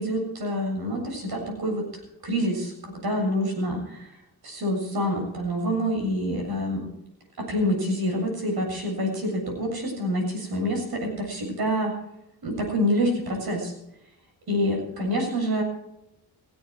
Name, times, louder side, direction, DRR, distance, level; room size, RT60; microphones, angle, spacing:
voice 1, 0.0-4.1 4.4-6.9 7.4-11.9 12.4-13.7 14.5-15.6, equal, 70° right, 2 dB, 7.6 m, -27 dB
17.5 x 16.0 x 4.8 m, 0.82 s
cardioid pair, 75°, 38 cm